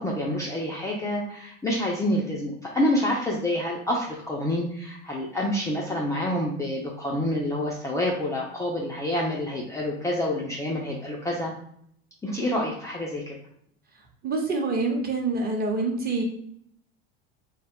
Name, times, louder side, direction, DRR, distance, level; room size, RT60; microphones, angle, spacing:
voice 1, 0.0-11.5 12.2-13.4, left 1 dB, 10° left, -4 dB, 0.4 m, -27 dB
voice 2, 14.2-16.2, right 3 dB, 30° right, 1 dB, 0.8 m, -26 dB
2.2 x 2.0 x 3.5 m, 0.68 s
hypercardioid pair, 85°, 33 cm